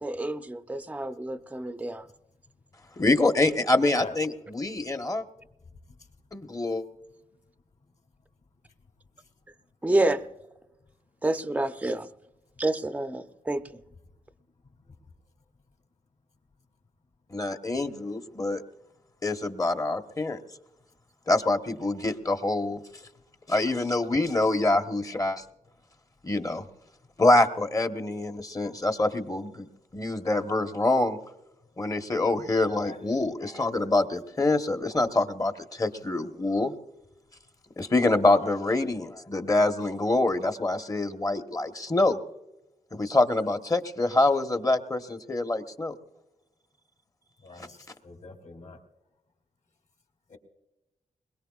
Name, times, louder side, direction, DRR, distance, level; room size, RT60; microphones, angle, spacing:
voice 1, 0.0-2.0 9.8-10.2 11.2-12.1 12.6-13.6, right 2 dB, 10° right, 9 dB, 0.6 m, -28 dB
voice 2, 3.0-5.2 6.3-6.8 17.3-18.6 19.2-20.4 21.3-22.8 23.5-25.4 26.2-26.6 27.2-29.7 29.9-31.2 31.8-36.7 37.8-42.2 42.9-45.9 47.6-47.7, left 2 dB, 25° left, 7 dB, 1.1 m, -25 dB
voice 3, 32.7-33.0 38.4-38.6 47.4-47.8 48.0-48.8 50.3-50.4, left 3 dB, 60° left, 3 dB, 3.0 m, -42 dB
22.0 x 21.0 x 2.4 m, 0.95 s
cardioid pair, 85°, 14 cm